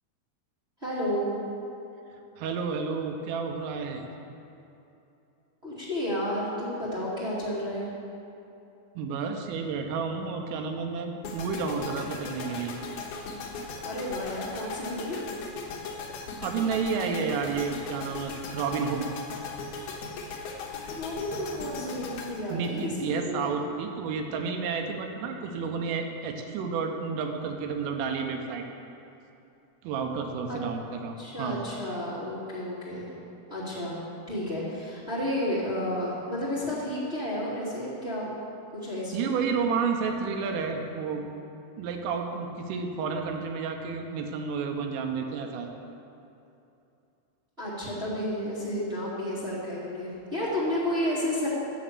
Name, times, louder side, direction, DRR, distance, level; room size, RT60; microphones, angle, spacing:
voice 1, 0.8-1.3 5.6-7.9 13.8-15.2 20.9-23.5 30.5-30.6 31.2-33.1 33.5-34.0 34.3-38.3 38.7-39.3 47.6-51.5, left 1 dB, 35° right, -10 dB, 0.9 m, -31 dB
voice 2, 2.4-4.1 9.0-12.7 16.4-19.1 22.5-28.6 29.8-31.6 39.1-41.3 41.8-45.7, right 5 dB, 80° right, 3 dB, 3.4 m, -31 dB
sound 1, 11.2-23.4, left 4 dB, 70° left, 2.4 m, -38 dB
10.5 x 7.2 x 7.9 m, 2.8 s
omnidirectional pair, 5.9 m